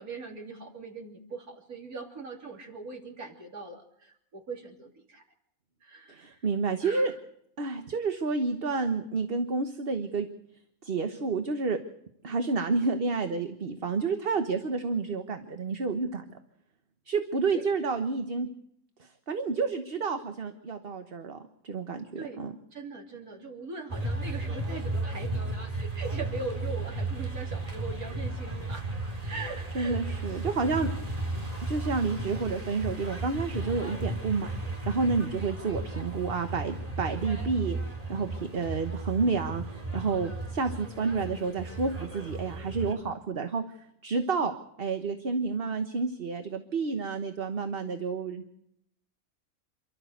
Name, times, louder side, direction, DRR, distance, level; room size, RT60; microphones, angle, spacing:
voice 1, 0.0-5.2 5.8-6.5 6.8-7.2 17.5-17.7 22.2-22.4 22.7-25.5 25.8-28.9 29.3-30.0 30.3-30.4, right 3 dB, 90° right, 1 dB, 3.6 m, -41 dB
voice 2, 6.1-7.1 7.6-10.3 10.8-11.8 12.2-16.2 17.1-18.5 19.0-22.5 29.7-30.9 31.6-34.5 34.8-39.6 39.9-48.4, right 4 dB, 45° right, 7 dB, 1.4 m, -30 dB
sound 1, 23.9-42.9, right 2 dB, 25° right, 2.8 m, -35 dB
28.0 x 13.0 x 8.0 m, 0.75 s
omnidirectional pair, 1.5 m